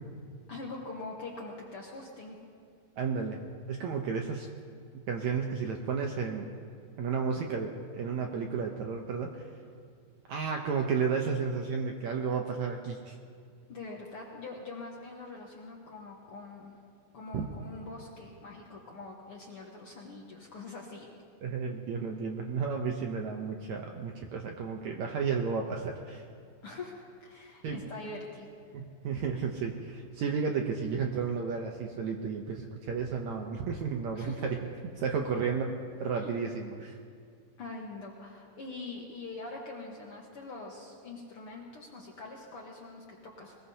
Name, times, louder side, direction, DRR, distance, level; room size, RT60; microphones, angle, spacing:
voice 1, 0.5-2.4 13.7-16.7 17.1-21.1 26.6-28.5 34.1-34.5 35.3-35.4 36.1-36.3 37.6-43.6, left 3 dB, 55° left, -2 dB, 1.6 m, -44 dB
voice 2, 3.0-3.4 3.7-4.5 5.1-6.5 7.0-9.4 10.3-13.2 17.3-17.5 21.4-26.3 27.6-27.8 28.7-34.6 35.0-35.7 36.0-37.0, right 5 dB, 70° right, 2 dB, 1.8 m, -32 dB
22.0 x 20.5 x 2.8 m, 2.2 s
omnidirectional pair, 4.1 m